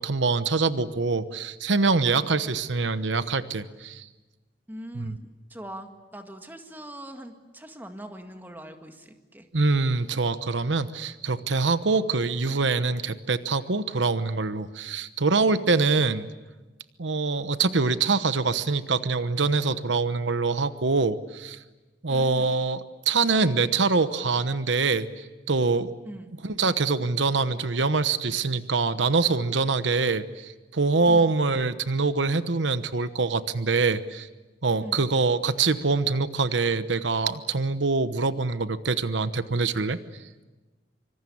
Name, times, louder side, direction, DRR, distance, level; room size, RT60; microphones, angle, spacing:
voice 1, 0.0-4.1 4.9-5.1 9.5-16.3 17.0-21.6 22.0-25.9 26.4-34.3 34.6-40.0, right 4 dB, 85° right, 12 dB, 1.1 m, -24 dB
voice 2, 4.7-9.5 22.1-22.5 26.0-26.3 31.1-31.3 34.8-35.1, equal, 10° right, 5 dB, 1.9 m, -41 dB
25.5 x 25.0 x 8.7 m, 1.2 s
head